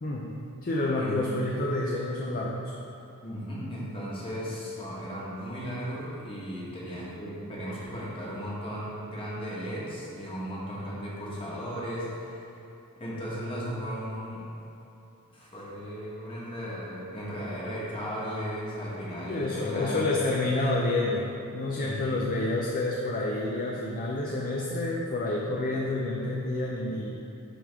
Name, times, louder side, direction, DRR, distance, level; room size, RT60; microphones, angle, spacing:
voice 1, 0.0-2.7 19.3-27.2, left 2 dB, 40° left, -3 dB, 0.5 m, -29 dB
voice 2, 3.2-12.5 13.0-14.4 15.3-20.3 21.8-22.2, equal, 25° left, -7 dB, 1.5 m, -36 dB
10.0 x 3.5 x 3.5 m, 2.8 s
head